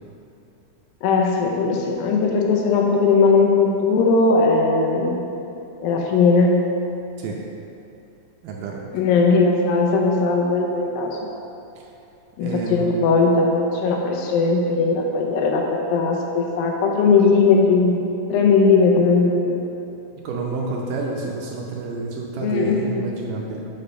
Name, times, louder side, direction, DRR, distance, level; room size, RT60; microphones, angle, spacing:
voice 1, 1.0-5.2 5.8-6.7 8.9-11.2 12.4-18.0 18.3-19.6 22.4-23.0, left 4 dB, 80° left, 1 dB, 2.5 m, -18 dB
voice 2, 8.4-8.8 11.8-11.9 12.4-12.9 20.2-23.7, right 3 dB, 75° right, -1 dB, 2.1 m, -29 dB
7.0 x 5.5 x 5.3 m, 2.8 s
omnidirectional pair, 4.2 m